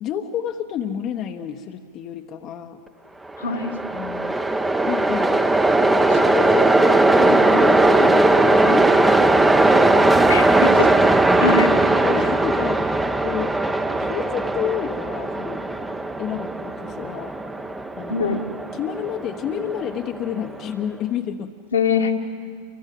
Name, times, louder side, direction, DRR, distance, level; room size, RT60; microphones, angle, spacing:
voice 1, 0.0-2.8 3.9-4.4 4.9-5.4 6.1-10.3 12.0-13.5 14.0-15.6 16.2-17.3 18.0-18.3 18.7-21.5, left 9 dB, 40° left, 4 dB, 1.2 m, -30 dB
Train, 3.3-20.5, right 2 dB, 10° right, 1.1 m, -19 dB
voice 2, 3.4-3.7 6.1-6.2 10.3-10.9 11.4-11.7 18.1-18.4 21.7-22.1, left 5 dB, 75° left, 2 dB, 2.1 m, -22 dB
28.5 x 24.0 x 7.7 m, 2.1 s
figure-of-eight pair, 90°, 0 cm